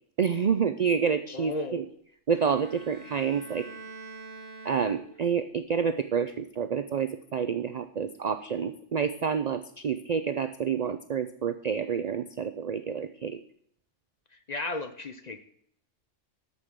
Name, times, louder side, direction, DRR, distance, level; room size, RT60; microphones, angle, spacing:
voice 1, 0.2-1.8 2.3-3.7 4.6-13.4, right 6 dB, 60° right, 11 dB, 0.4 m, -28 dB
voice 2, 1.3-1.8 14.5-15.4, left 2 dB, 45° left, 9 dB, 0.6 m, -34 dB
Bowed string instrument, 2.3-5.5, right 3 dB, 80° right, 1.6 m, -46 dB
8.4 x 7.0 x 6.1 m, 0.67 s
omnidirectional pair, 1.3 m